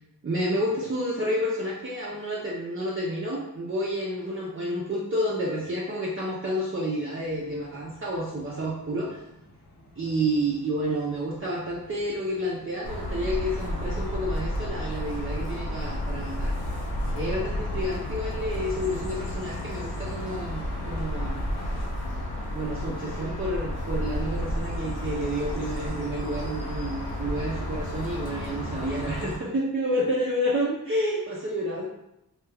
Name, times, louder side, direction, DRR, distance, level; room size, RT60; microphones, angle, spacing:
voice 1, 0.2-9.2 10.0-16.6 17.1-21.4 22.5-31.9, equal, 35° right, -5 dB, 0.6 m, -30 dB
sound 1, 7.2-21.9, equal, 45° left, 0.8 m, -47 dB
sound 2, 12.8-29.4, equal, 90° left, 0.7 m, -32 dB
2.3 x 2.3 x 3.3 m, 0.88 s
cardioid pair, 45°, 37 cm